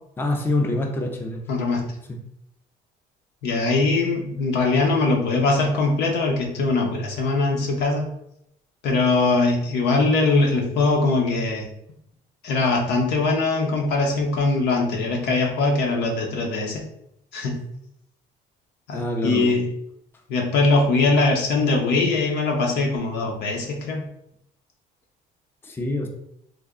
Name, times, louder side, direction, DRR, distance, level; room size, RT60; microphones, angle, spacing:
voice 1, 0.2-1.4 18.9-19.5 25.6-26.1, left 2 dB, 15° left, 2 dB, 0.5 m, -25 dB
voice 2, 1.5-1.8 3.4-8.1 8.8-11.7 12.4-16.8 17.3-17.5 18.9-19.7 20.3-24.0, left 3 dB, 80° left, 1 dB, 0.9 m, -21 dB
3.3 x 2.2 x 3.6 m, 0.76 s
cardioid pair, 110°, 17 cm